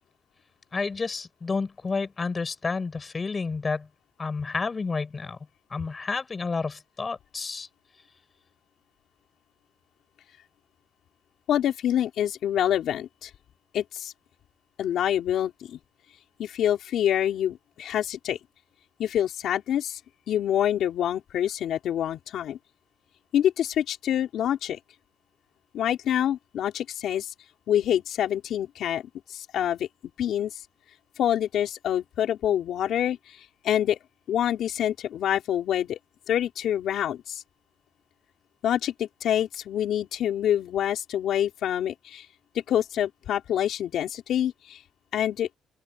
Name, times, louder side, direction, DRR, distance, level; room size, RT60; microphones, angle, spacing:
voice 1, 0.7-3.9 4.2-5.4 5.7-7.7, left 4 dB, 20° left, 7.2 m, -30 dB
voice 2, 11.5-13.3 13.7-14.1 14.8-15.8 16.4-18.4 19.0-20.0 20.3-22.6 23.3-24.8 25.7-27.3 27.7-29.0 29.3-29.9 30.2-30.5 31.2-33.2 33.6-34.0 34.3-36.0 36.3-37.4 38.6-42.2 42.5-44.8 45.1-45.5, left 10 dB, 55° left, 4.5 m, -26 dB
open air
cardioid pair, 180°, 0 cm